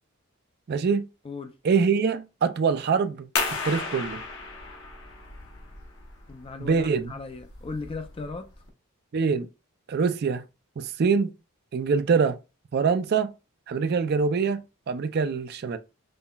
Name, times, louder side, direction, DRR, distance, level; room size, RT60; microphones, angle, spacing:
voice 1, 0.7-1.1 1.6-4.2 6.6-7.1 9.1-9.5 9.9-10.5 10.8-11.3 11.7-12.4 12.7-13.3 13.7-15.8, right 5 dB, 50° right, 0.4 m, -24 dB
voice 2, 1.2-1.6 6.3-8.5, left 3 dB, 25° left, 0.4 m, -37 dB
sound 1, 3.4-8.7, left 4 dB, 60° left, 0.9 m, -35 dB
5.4 x 2.1 x 2.3 m
head